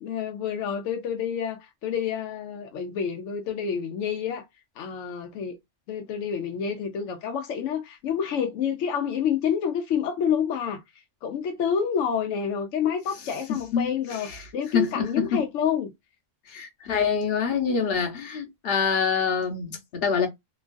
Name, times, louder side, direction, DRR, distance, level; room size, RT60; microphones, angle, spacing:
voice 1, 0.0-4.4 4.8-5.6 5.9-10.8 11.2-15.9, left 7 dB, 80° left, 0.9 m, -28 dB
voice 2, 13.5-14.5 14.7-15.4 16.5-20.3, left 6 dB, 55° left, 1.0 m, -26 dB
3.0 x 2.3 x 2.4 m
omnidirectional pair, 1.3 m